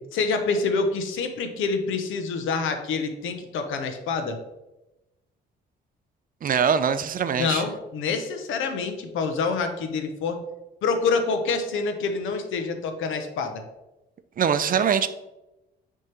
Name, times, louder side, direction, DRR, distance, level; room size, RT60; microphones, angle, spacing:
voice 1, 0.1-4.4 7.4-10.4 10.8-13.6, left 4 dB, 80° left, 7 dB, 0.8 m, -26 dB
voice 2, 6.4-7.6 14.4-15.1, right 7 dB, 45° right, 12 dB, 0.5 m, -22 dB
6.3 x 3.7 x 4.4 m, 0.98 s
cardioid pair, 90°, 20 cm